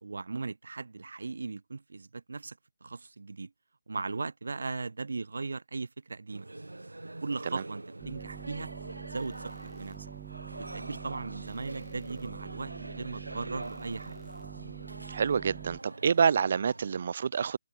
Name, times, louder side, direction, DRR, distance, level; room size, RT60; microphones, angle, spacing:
voice 1, 0.0-3.5 3.9-6.5 7.2-8.7 9.0-10.1 10.6-14.2, right 3 dB, 65° right, 1.8 m, -38 dB
sound 1, 6.3-17.0, right 2 dB, 85° right, 2.8 m, -44 dB
sound 2, 8.0-15.8, right 15 dB, 10° right, 1.6 m, -46 dB
voice 2, 15.1-17.6, right 6 dB, 45° right, 0.7 m, -27 dB
figure-of-eight pair, 155°, 0 cm